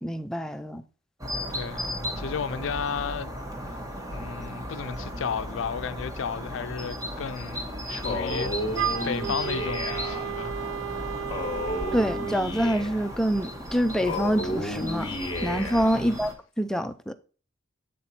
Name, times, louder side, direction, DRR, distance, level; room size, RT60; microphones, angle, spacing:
voice 1, 0.0-0.8 11.9-16.3 16.6-17.1, equal, 5° left, 0.3 m, -26 dB
sound 1, 1.2-16.3, equal, 15° right, 0.9 m, -36 dB
voice 2, 1.5-3.3 4.1-7.6 7.9-8.5 9.0-10.7 15.9-16.3, left 6 dB, 70° left, 0.4 m, -33 dB
Male speech man speaking, 8.0-10.2 11.3-13.1 14.0-16.0, left 1 dB, 25° left, 1.1 m, -32 dB
Wind instrument woodwind instrument, 8.7-12.4, right 9 dB, 80° right, 0.3 m, -33 dB
7.5 x 4.4 x 4.1 m
head